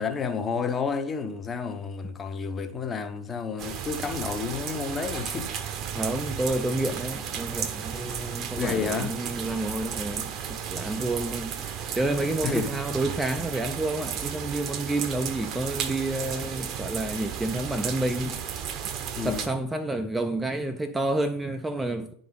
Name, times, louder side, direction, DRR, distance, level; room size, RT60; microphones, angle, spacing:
voice 1, 0.0-5.5 7.9-8.1 8.6-9.1 12.4-12.7 19.2-19.5, left 5 dB, 20° left, 0.7 m, -30 dB
sound 1, 3.6-19.5, right 8 dB, 35° right, 0.7 m, -34 dB
voice 2, 5.9-18.7 19.2-22.1, right 2 dB, 5° right, 0.4 m, -29 dB
10.5 x 3.9 x 3.8 m
figure-of-eight pair, 90°, 0 cm